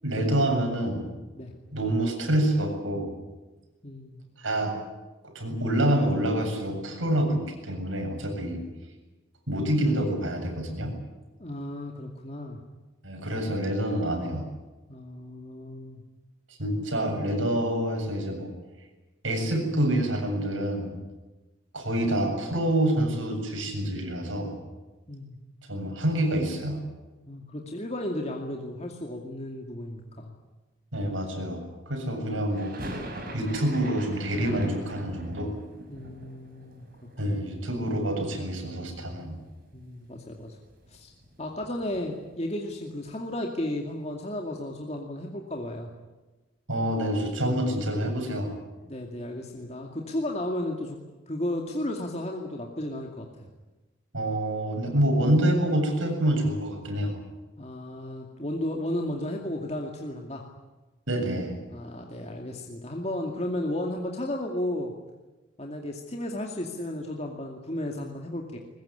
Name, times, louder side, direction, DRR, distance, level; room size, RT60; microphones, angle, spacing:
voice 1, 0.0-1.0 1.7-3.1 4.4-4.7 5.2-8.6 9.5-10.9 13.0-14.5 16.6-18.5 19.2-21.0 21.7-24.5 25.7-26.8 30.9-31.6 31.9-32.7 33.3-35.5 37.2-39.4 46.7-48.5 54.1-57.1 61.1-61.5, right 1 dB, 80° right, 4 dB, 7.4 m, -27 dB
voice 2, 3.8-4.2 11.4-12.6 14.9-16.0 25.1-25.4 27.3-30.3 32.0-32.2 35.9-36.9 37.2-37.4 39.7-40.6 40.9-41.1 41.4-45.9 48.8-51.0 51.3-53.5 57.6-60.5 61.7-64.9 65.6-68.6, left 1 dB, 35° left, 1 dB, 2.4 m, -34 dB
sound 1, 32.5-38.5 38.7-39.6 39.8-39.9 40.2-42.4, right 1 dB, 45° right, 6.2 m, -41 dB
22.5 x 20.5 x 9.9 m, 1.2 s
head